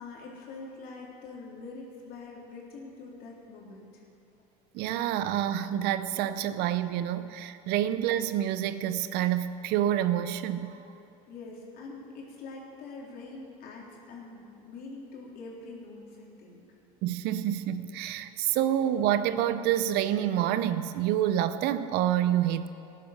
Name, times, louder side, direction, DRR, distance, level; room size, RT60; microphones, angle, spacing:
voice 1, 0.0-4.0 11.3-16.6 18.4-18.5, left 3 dB, 55° left, 3.5 m, -44 dB
voice 2, 4.7-10.8 17.0-22.7, right 11 dB, 65° right, 0.7 m, -28 dB
14.5 x 10.5 x 6.7 m
supercardioid pair, 100°, 18 cm